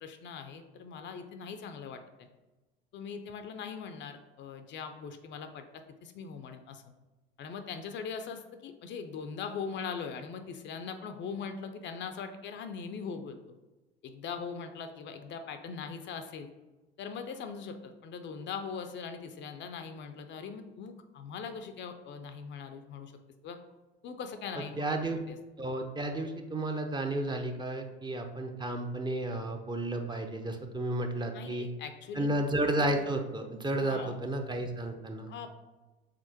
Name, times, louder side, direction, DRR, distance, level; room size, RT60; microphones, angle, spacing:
voice 1, 0.0-2.3 2.9-5.6 6.0-6.8 7.4-13.4 14.0-16.5 17.0-23.1 23.4-23.6 24.0-24.9 25.3-25.4 31.3-32.3 33.8-34.1 35.3-35.5, left 6 dB, 40° left, 7 dB, 0.5 m, -41 dB
voice 2, 24.8-25.2 25.6-31.7 32.1-35.3, right 1 dB, 15° right, 4 dB, 0.5 m, -32 dB
5.0 x 3.5 x 2.8 m, 1.1 s
hypercardioid pair, 65°, 29 cm